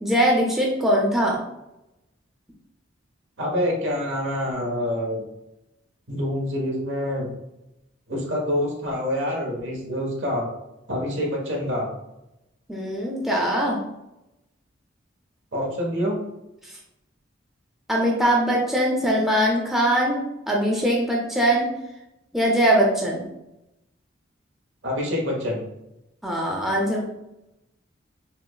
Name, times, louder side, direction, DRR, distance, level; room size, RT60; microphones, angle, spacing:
voice 1, 0.0-1.4 12.7-13.8 16.6-16.7 17.9-20.2 20.5-21.7 22.3-23.2 26.2-27.1, right 1 dB, ahead, -3 dB, 0.5 m, -21 dB
voice 2, 3.4-5.2 6.1-7.3 8.1-10.5 10.9-11.9 15.5-16.2 24.8-25.6, left 1 dB, 75° right, -1 dB, 1.0 m, -26 dB
5.4 x 2.0 x 2.3 m, 0.91 s
head